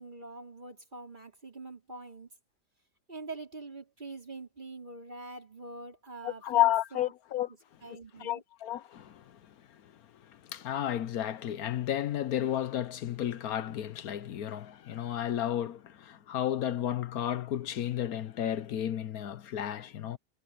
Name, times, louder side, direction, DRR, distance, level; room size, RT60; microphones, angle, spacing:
voice 1, 0.0-2.3 3.1-7.1 7.8-8.4, right 2 dB, 25° right, 4.1 m, -44 dB
voice 2, 6.2-7.5 8.2-9.4 10.5-20.2, left 12 dB, 65° left, 1.2 m, -32 dB
omnidirectional pair, 1.8 m